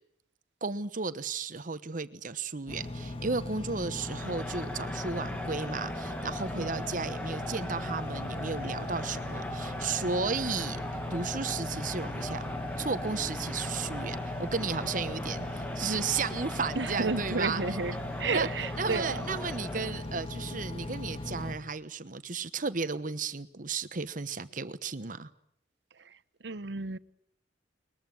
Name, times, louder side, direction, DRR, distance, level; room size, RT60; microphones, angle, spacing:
voice 1, 0.6-10.8 11.1-12.4 12.8-17.6 18.3-18.5 18.8-25.3, right 4 dB, 50° right, 1.1 m, -34 dB
Engine, 2.7-21.6, left 1 dB, 30° left, 2.5 m, -38 dB
Crowd, 4.0-20.1, left 1 dB, 10° left, 1.8 m, -40 dB
voice 2, 16.7-19.2 26.0-26.2 26.4-27.0, right 4 dB, 75° right, 0.9 m, -32 dB
21.5 x 21.5 x 9.2 m
head